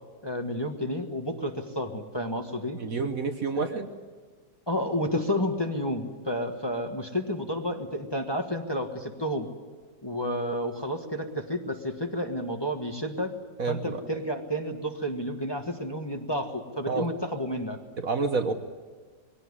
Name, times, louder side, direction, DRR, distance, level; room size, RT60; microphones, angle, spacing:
voice 1, 0.2-2.8 3.5-3.8 4.7-9.5 10.0-13.3 13.7-17.8, equal, 15° left, 3 dB, 1.5 m, -31 dB
voice 2, 2.8-3.9 13.6-14.0 16.9-17.1 18.0-18.5, right 4 dB, 55° right, 7 dB, 1.4 m, -28 dB
22.0 x 17.0 x 9.8 m, 1.5 s
omnidirectional pair, 1.9 m